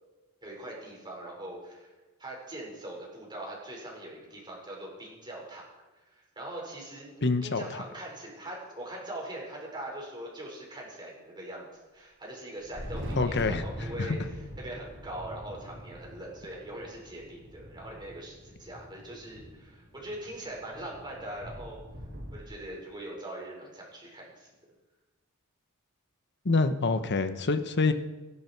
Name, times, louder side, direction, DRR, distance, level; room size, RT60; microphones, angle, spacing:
voice 1, 0.4-1.9 2.2-5.6 6.0-7.1 7.4-14.2 14.6-21.8 22.3-24.5, right 1 dB, 20° right, -2 dB, 5.3 m, -42 dB
voice 2, 7.2-7.8 13.2-13.6 14.0-14.2 26.4-27.9, left 3 dB, 50° left, 10 dB, 1.1 m, -26 dB
Thunder, 12.6-22.4, equal, 55° right, 4.4 m, -42 dB
24.0 x 11.5 x 4.6 m, 1.2 s
head